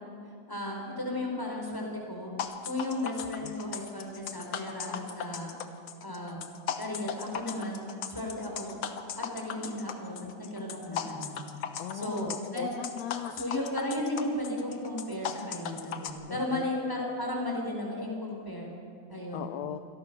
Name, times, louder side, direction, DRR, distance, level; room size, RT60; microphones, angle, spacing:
voice 1, 0.5-2.3 2.6-5.5 6.0-6.4 6.8-7.8 8.1-8.8 9.2-11.4 11.9-12.7 13.3-18.7 19.1-19.5, left 1 dB, 5° left, 0 dB, 4.3 m, -34 dB
sound 1, 2.4-16.1, left 8 dB, 55° left, 1.6 m, -37 dB
sound 2, 7.4-9.7 9.9-12.4, right 3 dB, 85° right, 4.8 m, -53 dB
voice 2, 11.8-13.7 16.3-16.7 19.3-19.8, left 11 dB, 75° left, 10 dB, 1.8 m, -39 dB
26.5 x 18.0 x 6.8 m, 2.4 s
omnidirectional pair, 3.3 m